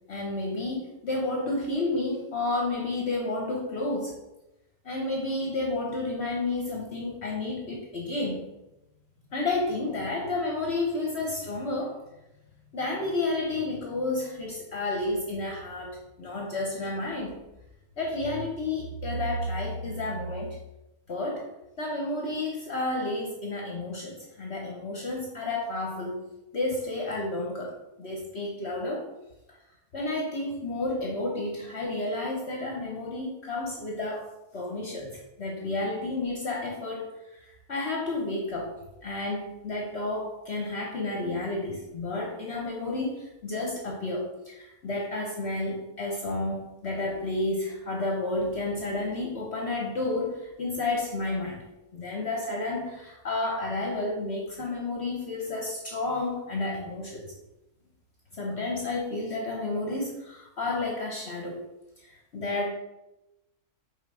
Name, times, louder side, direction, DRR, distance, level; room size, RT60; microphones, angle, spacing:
voice 1, 0.1-4.2 4.8-8.5 9.3-12.0 12.7-17.4 18.0-20.6 21.1-21.5 21.8-29.1 29.9-34.3 34.5-51.6 51.9-57.2 58.3-61.6 62.0-62.7, left 2 dB, 50° left, 0 dB, 1.0 m, -31 dB
5.4 x 3.8 x 4.7 m, 0.94 s
omnidirectional pair, 1.6 m